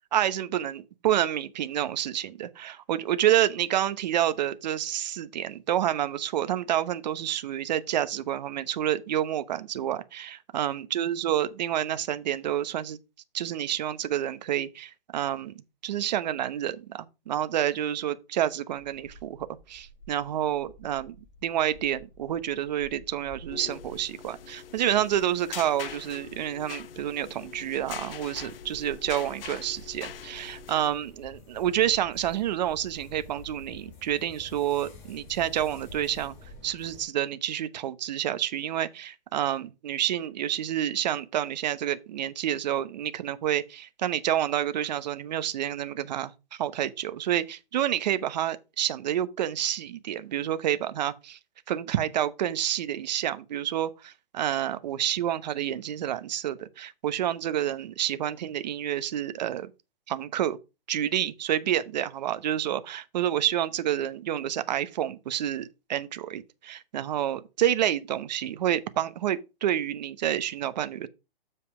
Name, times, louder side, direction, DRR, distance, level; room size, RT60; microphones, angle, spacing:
voice 1, 0.1-13.0 13.3-15.5 15.8-21.2 21.4-36.3 36.6-51.4 51.7-59.7 60.1-60.6 60.9-71.1, right 11 dB, 45° right, 1.0 m, -29 dB
sound 1, 18.8-37.0, left 1 dB, 30° left, 4.9 m, -50 dB
sound 2, 23.4-30.9, left 9 dB, 70° left, 0.9 m, -43 dB
7.5 x 5.5 x 4.8 m
hypercardioid pair, 155°, 29 cm